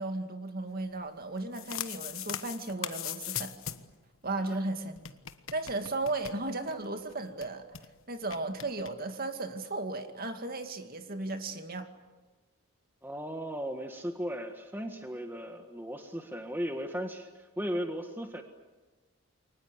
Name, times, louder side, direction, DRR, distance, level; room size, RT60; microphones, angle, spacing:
voice 1, 0.0-3.5 4.2-5.0 5.5-7.7 8.1-11.9, right 2 dB, 40° right, 6 dB, 2.3 m, -35 dB
sound 1, 1.3-4.0 4.2-4.3 4.5-4.6 5.0-6.8 7.1-7.2 7.4-7.9 8.3-8.9, left 10 dB, 70° left, 1.3 m, -39 dB
voice 2, 13.0-18.4, equal, 10° right, 5 dB, 1.6 m, -36 dB
29.5 x 24.0 x 8.3 m, 1.2 s
head